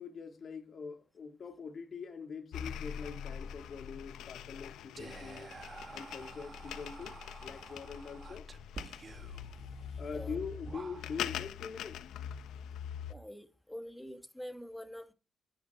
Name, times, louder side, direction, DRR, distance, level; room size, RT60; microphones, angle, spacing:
voice 1, 0.0-5.5 5.9-8.4 10.0-12.0, left 5 dB, 50° left, 3.8 m, -43 dB
sound 1, 2.5-13.1, left 9 dB, 80° left, 1.1 m, -43 dB
Whispering, 5.0-11.4, right 4 dB, 35° right, 1.6 m, -50 dB
voice 2, 13.1-15.1, equal, 5° left, 2.1 m, -45 dB
13.5 x 10.5 x 4.4 m
cardioid pair, 90°, 0 cm